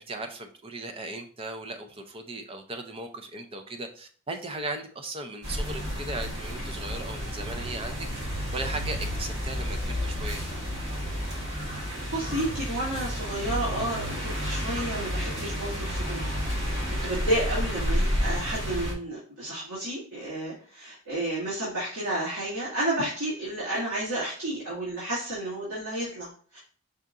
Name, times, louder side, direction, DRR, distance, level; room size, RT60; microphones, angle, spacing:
voice 1, 0.0-8.1 8.5-10.4, right 2 dB, 25° right, 5 dB, 0.5 m, -37 dB
sound 1, 5.4-18.9, equal, 50° right, 1.4 m, -31 dB
voice 2, 12.1-26.6, right 1 dB, 70° right, -8 dB, 2.0 m, -31 dB
5.6 x 2.6 x 3.6 m, 0.43 s
head